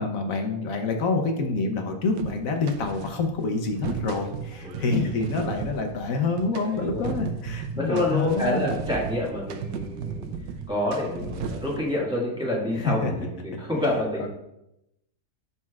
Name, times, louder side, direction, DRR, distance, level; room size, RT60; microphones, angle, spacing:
voice 1, 0.0-8.7 12.7-13.1 14.2-14.3, left 3 dB, 60° left, 3 dB, 1.1 m, -27 dB
sound 1, 2.2-3.3 3.6-11.9, right 6 dB, 85° right, 1.2 m, -35 dB
voice 2, 6.6-7.1 7.8-10.3 10.7-14.3, left 1 dB, 5° right, -5 dB, 1.6 m, -28 dB
12.0 x 4.2 x 2.4 m, 0.86 s
omnidirectional pair, 1.8 m